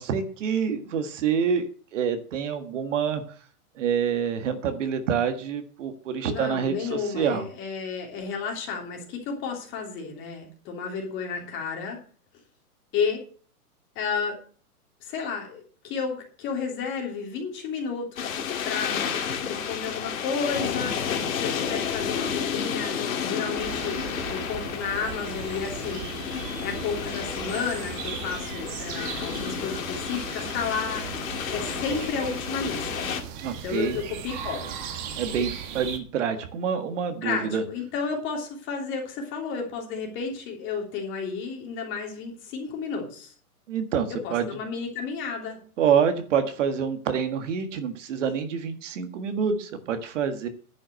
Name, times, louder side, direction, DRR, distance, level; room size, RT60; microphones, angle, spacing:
voice 1, 0.0-1.6 1.9-3.2 3.8-7.4 33.4-34.0 35.2-37.6 43.7-44.5 45.8-50.5, right 7 dB, 55° right, 8 dB, 1.7 m, -27 dB
voice 2, 6.2-12.0 12.9-13.2 13.9-14.4 15.0-19.1 19.4-24.0 24.3-26.1 26.6-31.2 31.5-33.1 33.6-34.7 37.2-43.3 44.1-45.6, left 5 dB, 25° left, 1 dB, 3.1 m, -32 dB
sound 1, 18.2-33.2, left 7 dB, 60° left, 2.4 m, -31 dB
sound 2, 23.6-36.0, right 7 dB, 30° right, 1.6 m, -38 dB
11.0 x 6.2 x 8.0 m, 0.43 s
hypercardioid pair, 150°, 45 cm